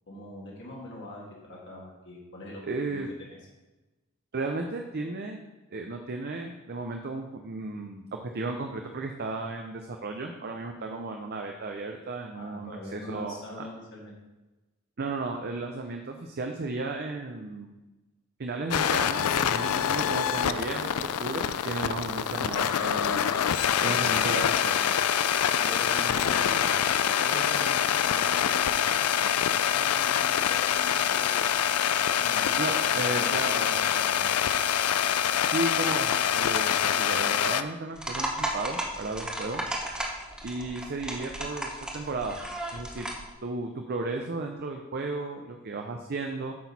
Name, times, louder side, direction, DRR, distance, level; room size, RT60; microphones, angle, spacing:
voice 1, 0.1-2.6 2.9-3.0 3.3-3.4 12.4-14.2 25.6-26.6 27.2-31.5 32.0-32.5 32.9-34.3, left 1 dB, 55° left, -4 dB, 1.7 m, -42 dB
voice 2, 2.7-3.1 4.3-5.4 5.7-13.7 15.0-17.8 18.4-23.3 23.8-24.8 32.6-33.8 35.3-39.6 40.4-42.4 42.7-43.1 43.4-46.5, right 3 dB, 50° right, 3 dB, 0.6 m, -34 dB
sound 1, 18.7-37.6, left 9 dB, 85° left, 0.4 m, -25 dB
sound 2, 38.0-43.3, right 1 dB, 5° right, 0.9 m, -34 dB
8.5 x 6.2 x 4.1 m, 1.1 s
head